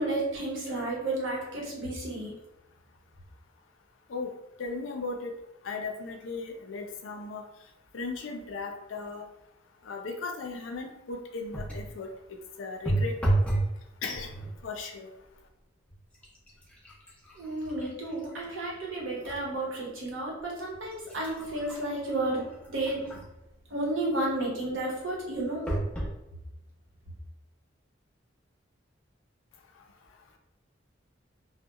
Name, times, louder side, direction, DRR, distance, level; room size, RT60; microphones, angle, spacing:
voice 1, 0.0-2.3 17.3-23.1 23.7-25.7, right 2 dB, 80° right, -3 dB, 0.8 m, -32 dB
voice 2, 4.6-5.3 5.6-7.4 7.9-9.2 9.8-12.1 12.6-13.2 14.0-14.3 14.6-15.1, left 4 dB, 90° left, 3 dB, 0.4 m, -36 dB
sound 1, 11.5-12.0 12.9-13.8 14.1-14.6 15.3-15.5 15.9-19.5 19.9-20.0 20.7-23.4 25.7-26.2 26.9-27.0 27.2-27.3, right 1 dB, 5° left, 0.5 m, -32 dB
2.8 x 2.1 x 2.3 m, 0.93 s
head